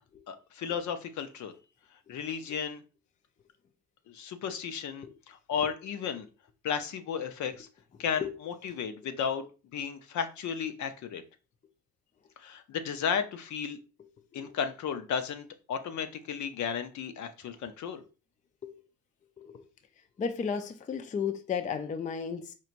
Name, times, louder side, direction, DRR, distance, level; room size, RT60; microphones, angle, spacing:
voice 1, 0.3-1.5 2.1-2.8 4.1-6.3 6.6-7.7 8.0-9.5 9.7-11.2 12.4-13.8 14.3-18.0, left 7 dB, 60° left, 0.7 m, -34 dB
voice 2, 20.2-22.5, left 6 dB, 25° left, 0.4 m, -33 dB
4.5 x 2.8 x 2.5 m
cardioid pair, 100°, 33 cm